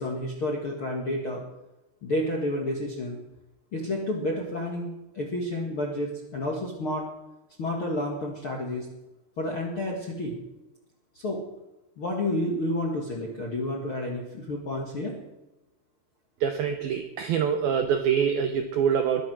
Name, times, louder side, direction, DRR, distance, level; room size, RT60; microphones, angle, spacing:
voice 1, 0.0-1.4 2.0-3.2 3.7-7.0 7.6-8.9 9.4-10.4 11.1-11.4 12.0-15.2, left 1 dB, 60° left, -1 dB, 1.4 m, -30 dB
voice 2, 16.4-19.2, right 7 dB, 80° right, 5 dB, 2.1 m, -25 dB
21.5 x 8.1 x 6.2 m, 0.99 s
omnidirectional pair, 5.5 m